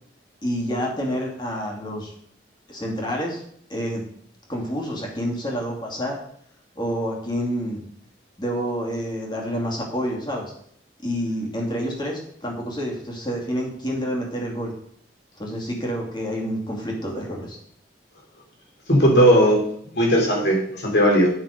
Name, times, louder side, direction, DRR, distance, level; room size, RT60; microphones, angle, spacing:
voice 1, 0.4-2.1 2.7-3.4 3.7-4.0 4.5-6.2 6.7-7.8 8.4-10.5 11.0-14.7 15.4-17.6, equal, 25° left, -1 dB, 2.6 m, -28 dB
voice 2, 18.9-19.6 19.9-21.3, equal, 70° left, -2 dB, 3.7 m, -17 dB
9.4 x 6.5 x 5.2 m, 0.67 s
head